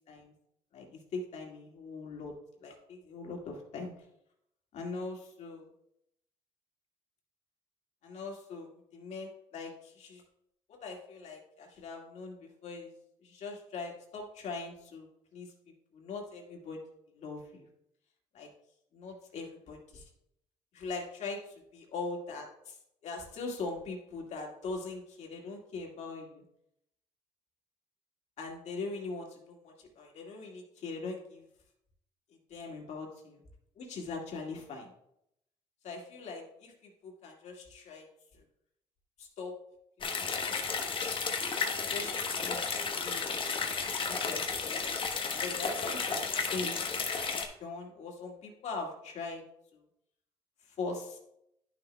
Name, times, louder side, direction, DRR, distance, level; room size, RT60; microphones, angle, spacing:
voice 1, 0.7-2.3 2.6-3.9 4.7-5.6 8.0-10.2 10.7-12.9 13.2-15.5 15.9-16.8 17.1-17.7 18.3-18.5 18.9-20.0 20.7-21.4 21.7-22.8 23.0-26.4 28.4-31.4 32.5-33.4 33.8-34.9 35.8-38.1 38.3-38.4 39.2-39.6 40.0-40.3 41.9-42.6 43.0-43.2 43.7-46.2 46.5-46.8 47.1-47.3 47.6-49.4 49.7-49.8 50.7-51.2, left 3 dB, 60° left, 0 dB, 2.0 m, -41 dB
sound 1, 40.0-47.5, left 5 dB, 40° left, 1.1 m, -33 dB
11.0 x 6.2 x 2.3 m, 0.78 s
supercardioid pair, 85°, 13 cm